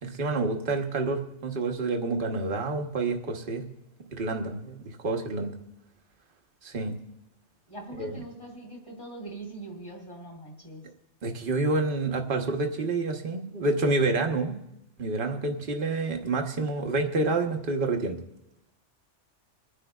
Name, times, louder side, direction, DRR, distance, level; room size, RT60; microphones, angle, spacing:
voice 1, 0.0-3.6 4.1-5.6 6.6-6.9 8.0-8.2 11.2-14.6 15.0-18.2, right 3 dB, 45° right, 4 dB, 1.2 m, -28 dB
voice 2, 7.7-10.8, right 2 dB, 25° left, 2 dB, 3.1 m, -42 dB
29.5 x 10.0 x 2.3 m, 0.86 s
omnidirectional pair, 1.3 m